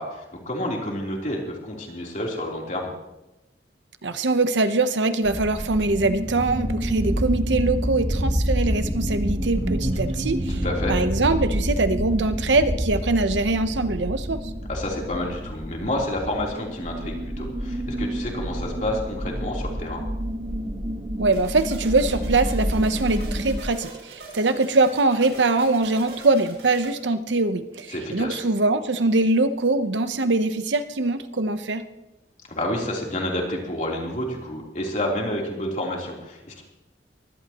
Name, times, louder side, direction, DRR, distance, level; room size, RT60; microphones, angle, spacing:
voice 1, 0.0-2.9 10.5-10.9 14.7-20.0 27.9-28.4 32.5-36.6, left 1 dB, 45° left, -2 dB, 3.6 m, -29 dB
voice 2, 4.0-10.6 10.9-14.4 21.2-31.8, right 3 dB, 85° right, 10 dB, 0.9 m, -22 dB
sound 1, 5.2-23.6, equal, 30° right, 1.4 m, -28 dB
sound 2, 21.3-26.9, right 3 dB, 70° right, 6.9 m, -42 dB
23.0 x 16.0 x 3.0 m, 0.98 s
head